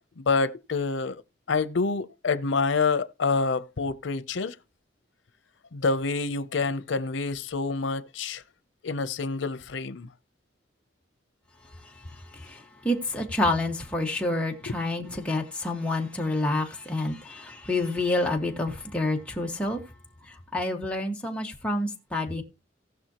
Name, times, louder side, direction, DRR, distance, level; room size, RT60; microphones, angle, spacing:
voice 1, 0.2-1.2 1.5-4.6 5.7-8.4 8.8-10.1 14.7-15.2, left 4 dB, 90° left, 0.7 m, -27 dB
voice 2, 12.3-19.8 20.5-22.4, left 2 dB, 5° left, 1.6 m, -28 dB
18.5 x 6.2 x 2.9 m
head